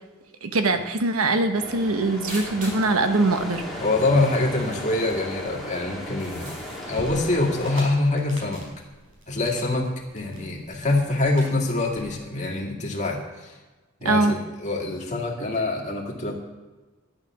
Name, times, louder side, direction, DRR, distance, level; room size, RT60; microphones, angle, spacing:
voice 1, 0.4-3.8 14.0-14.4, right 2 dB, 85° right, 8 dB, 1.0 m, -22 dB
sound 1, 1.5-7.8, left 1 dB, ahead, 2.4 m, -36 dB
sound 2, 2.3-2.9 4.0-4.1 4.3-4.4 4.9-5.0 6.0-6.8, equal, 45° right, 4.8 m, -39 dB
voice 2, 3.8-6.5 6.9-8.6 9.3-13.5 14.0-16.4, left 2 dB, 35° left, -1 dB, 2.1 m, -25 dB
sound 3, 6.9-12.0, right 1 dB, 65° right, 4.4 m, -44 dB
11.5 x 8.8 x 6.1 m, 1.2 s
head